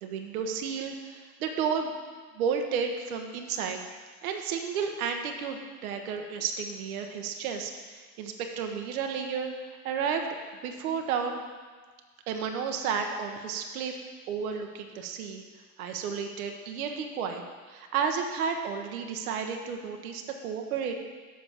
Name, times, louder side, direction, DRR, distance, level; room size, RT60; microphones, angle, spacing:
voice 1, 0.0-1.9 2.3-3.8 4.2-10.3 10.6-11.4 12.3-13.9 14.3-15.4 15.8-20.9, right 6 dB, 80° right, 4 dB, 0.9 m, -32 dB
7.5 x 5.3 x 7.1 m, 1.5 s
hypercardioid pair, 60°, 43 cm